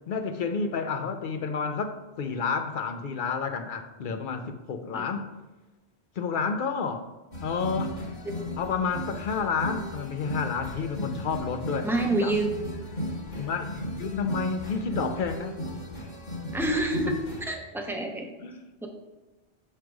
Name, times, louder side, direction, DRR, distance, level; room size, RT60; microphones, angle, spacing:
voice 1, 0.1-5.3 6.2-7.1 7.4-8.0 8.6-12.3 13.4-15.6 18.4-18.6, left 5 dB, 60° left, 7 dB, 0.6 m, -30 dB
sound 1, 7.3-17.4, equal, 45° left, 1.2 m, -36 dB
voice 2, 11.8-12.6 16.5-18.3 18.8-18.9, right 2 dB, 5° right, 2 dB, 0.5 m, -28 dB
6.2 x 3.3 x 4.6 m, 1.1 s
omnidirectional pair, 1.1 m